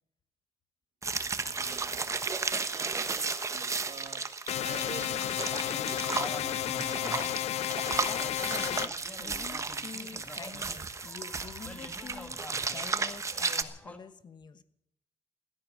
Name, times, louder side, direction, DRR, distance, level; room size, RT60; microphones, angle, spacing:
sound 1, 1.0-13.6, right 4 dB, 25° right, 1.1 m, -34 dB
voice 1, 1.5-2.2 2.7-7.4, right 7 dB, 70° right, 6 dB, 1.9 m, -48 dB
sound 2, 4.5-8.9, left 12 dB, 70° left, 0.5 m, -32 dB
sound 3, 5.5-14.0, left 1 dB, 10° left, 1.8 m, -46 dB
voice 2, 7.4-14.6, left 6 dB, 40° left, 13 dB, 1.1 m, -47 dB
16.5 x 12.5 x 6.5 m, 0.78 s
cardioid pair, 130°, 11 cm